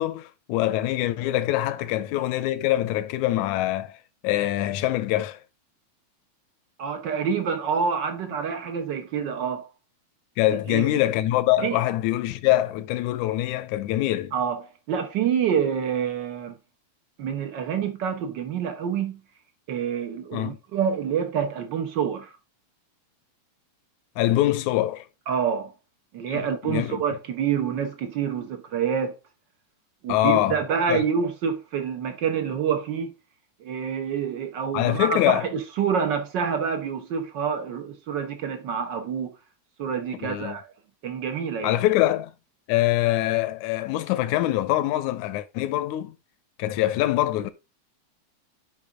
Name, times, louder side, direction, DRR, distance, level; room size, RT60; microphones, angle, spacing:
voice 1, 0.0-4.0 4.2-5.4 10.4-14.3 20.3-20.6 24.2-25.1 26.3-27.0 30.1-30.6 30.9-31.0 34.7-35.5 40.2-40.6 41.6-42.3 42.7-46.2 46.6-47.5, left 14 dB, 85° left, 2.0 m, -24 dB
voice 2, 6.8-9.7 10.7-10.9 11.6-11.8 14.3-16.6 17.2-19.2 19.7-22.3 25.3-25.7 26.1-29.1 30.0-33.1 33.6-39.3 39.8-40.7 41.0-41.8, right 7 dB, 70° right, 1.1 m, -27 dB
8.6 x 5.5 x 3.6 m
omnidirectional pair, 3.4 m